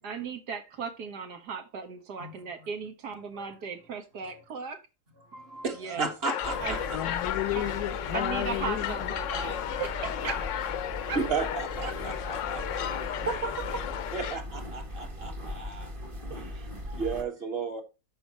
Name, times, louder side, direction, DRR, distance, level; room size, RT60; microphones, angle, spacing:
voice 1, 0.0-4.8 5.8-6.1 6.6-6.8 7.6-7.7 8.1-10.5 11.1-11.2 11.8-11.9, right 5 dB, 85° right, 1.9 m, -37 dB
voice 2, 5.3-7.0 11.2-12.8 13.2-13.6 14.1-15.9 16.3-16.5 16.9-17.8, right 4 dB, 40° right, 1.7 m, -34 dB
sound 1, 6.2-14.4, left 10 dB, 65° left, 0.8 m, -34 dB
sound 2, 6.4-17.2, left 1 dB, 20° right, 1.2 m, -39 dB
voice 3, 6.9-9.1, left 15 dB, 85° left, 1.2 m, -33 dB
13.0 x 5.1 x 3.0 m
omnidirectional pair, 1.7 m